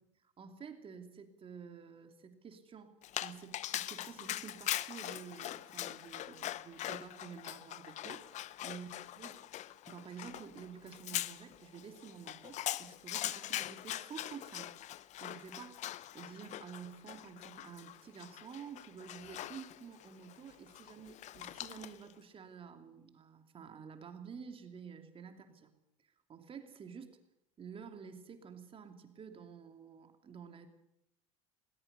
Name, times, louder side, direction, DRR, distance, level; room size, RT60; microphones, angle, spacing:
voice 1, 0.4-8.4 8.6-8.9 9.2-9.4 9.9-25.7 26.3-27.2 27.6-30.7, right 6 dB, 30° right, 7 dB, 2.8 m, -50 dB
Dog, 3.0-22.1, left 13 dB, 45° left, 0.7 m, -42 dB
20.5 x 19.0 x 6.8 m, 0.80 s
hypercardioid pair, 90°, 17 cm